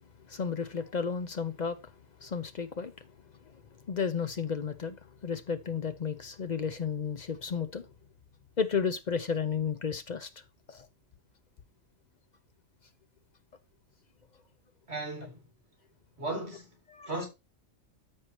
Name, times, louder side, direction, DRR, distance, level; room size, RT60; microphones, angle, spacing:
voice 1, 0.3-1.8 2.2-2.9 3.9-7.9 8.6-10.3 10.7-10.9 17.0-17.1, left 6 dB, 50° left, 0.5 m, -32 dB
voice 2, 14.9-15.5 16.2-16.8 17.0-17.3, right 2 dB, 50° right, 3.3 m, -36 dB
13.5 x 4.5 x 3.0 m
omnidirectional pair, 1.4 m